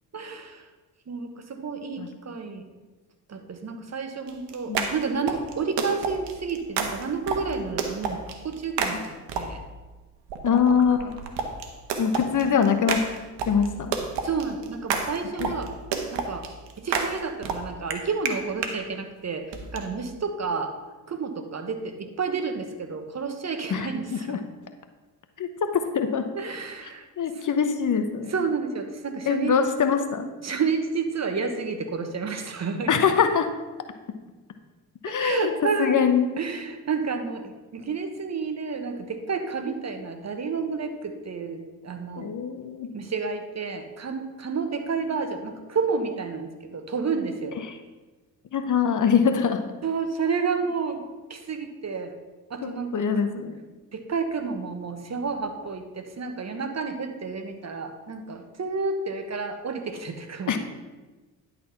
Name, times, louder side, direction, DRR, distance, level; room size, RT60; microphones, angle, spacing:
voice 1, 0.1-0.6 1.1-2.7 3.3-9.0 9.3-9.6 12.2-12.5 14.2-15.7 16.1-16.5 16.8-20.7 21.1-24.4 26.3-27.1 27.3-27.9 28.3-29.6 30.4-33.1 35.1-36.0 36.4-42.3 42.9-47.6 49.8-52.2 52.5-53.2 53.9-60.6, right 5 dB, 35° right, 7 dB, 1.2 m, -30 dB
sound 1, 4.3-9.7 10.3-18.7 19.5-19.8, right 5 dB, 60° right, 1.3 m, -31 dB
voice 2, 10.4-11.2 12.0-13.0 13.5-13.9 15.4-15.5 23.7-23.9 24.3-24.4 25.4-25.5 25.7-26.2 27.2-28.3 29.3-30.3 32.9-33.5 35.0-35.5 35.8-36.3 42.2-42.9 48.5-49.6 52.6-53.6 60.5-60.6, left 7 dB, 40° left, 8 dB, 0.9 m, -23 dB
11.0 x 4.3 x 5.8 m, 1.2 s
hypercardioid pair, 50°, 47 cm